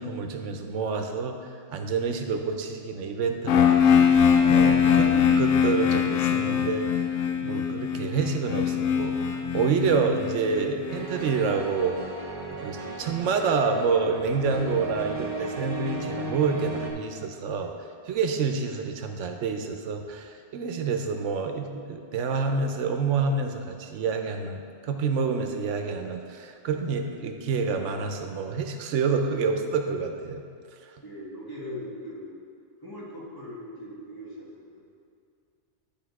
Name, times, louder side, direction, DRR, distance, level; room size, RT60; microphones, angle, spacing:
voice 1, 0.0-6.9 7.4-12.0 12.5-17.7 18.1-30.4, right 5 dB, 90° right, 5 dB, 1.0 m, -28 dB
sound 1, 3.5-11.3, left 7 dB, 75° left, 0.9 m, -22 dB
sound 2, 10.9-16.9, right 2 dB, 60° right, 1.2 m, -35 dB
voice 2, 31.0-32.4 32.8-34.8, left 1 dB, 20° left, -7 dB, 1.5 m, -40 dB
9.9 x 3.6 x 4.7 m, 2.4 s
omnidirectional pair, 1.2 m